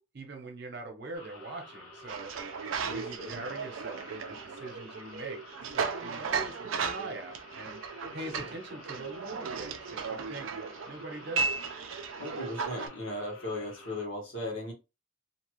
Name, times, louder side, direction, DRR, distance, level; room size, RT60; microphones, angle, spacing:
voice 1, 0.1-2.3 2.8-5.4 5.7-7.8 8.1-10.5 10.9-11.6, right 2 dB, 55° right, 3 dB, 0.8 m, -43 dB
sound 1, 1.1-14.1, left 1 dB, 85° left, 1.2 m, -51 dB
sound 2, 2.1-12.9, right 5 dB, 75° right, 0.4 m, -36 dB
voice 2, 2.8-3.5 8.0-8.5 12.2-14.7, left 1 dB, 70° left, -1 dB, 1.4 m, -38 dB
2.8 x 2.3 x 3.1 m, 0.26 s
head